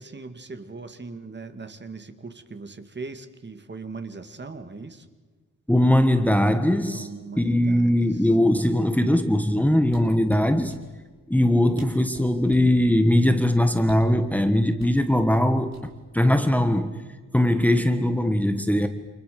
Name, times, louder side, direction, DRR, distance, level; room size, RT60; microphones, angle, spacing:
voice 1, 0.0-5.1 6.8-8.1, right 4 dB, 35° right, 9 dB, 2.2 m, -39 dB
voice 2, 5.7-7.1 7.4-10.7 11.3-15.8 16.1-17.0 17.3-18.9, left 1 dB, 5° left, 8 dB, 1.5 m, -20 dB
sound 1, 9.8-10.8 11.5-11.6 11.8-12.8 13.8-14.2 14.8-15.0 15.7-16.2 16.5-16.8, right 3 dB, 55° right, 6.7 m, -46 dB
29.5 x 28.0 x 6.9 m, 1.3 s
wide cardioid pair, 135°, 32 cm